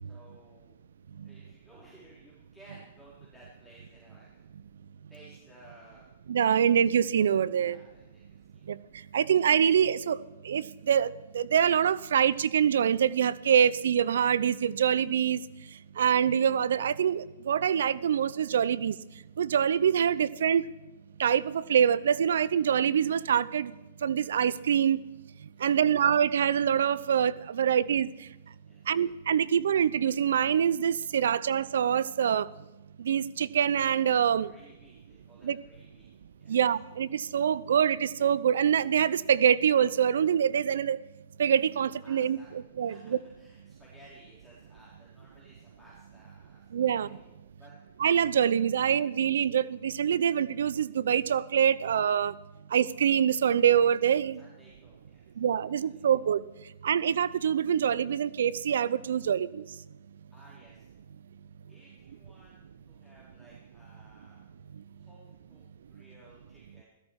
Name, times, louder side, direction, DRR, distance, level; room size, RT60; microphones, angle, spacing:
voice 1, 0.0-0.8 1.2-4.5 5.1-6.1 7.5-8.7 25.5-25.9 28.6-28.9 34.3-36.1 36.4-36.6 42.0-47.2 47.6-47.7 54.3-55.3 55.8-56.1 60.3-60.9 61.7-64.4 64.9-65.6 65.9-66.8, right 1 dB, ahead, -8 dB, 4.1 m, -57 dB
voice 2, 6.3-7.8 8.7-8.8 9.1-15.4 16.0-19.0 19.4-20.6 21.2-23.7 24.0-25.0 25.6-28.3 28.9-32.5 33.0-34.5 35.4-35.6 36.5-41.0 41.4-42.4 42.8-43.2 46.7-47.1 48.0-52.3 52.7-54.4 55.4-56.4 56.8-59.7, right 8 dB, 75° right, 18 dB, 0.6 m, -25 dB
16.5 x 13.5 x 4.8 m, 1.0 s
hypercardioid pair, 125°, 0 cm